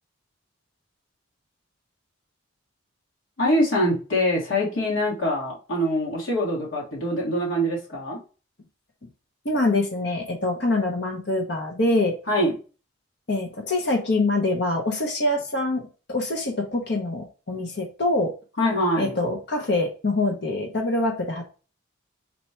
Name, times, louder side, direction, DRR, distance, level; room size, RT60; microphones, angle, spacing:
voice 1, 3.4-8.2 12.3-12.5 18.6-19.1, equal, 75° left, -3 dB, 1.5 m, -24 dB
voice 2, 9.4-12.1 13.3-18.3 19.0-21.5, left 2 dB, 55° left, 2 dB, 0.7 m, -25 dB
4.1 x 2.3 x 4.2 m, 0.35 s
head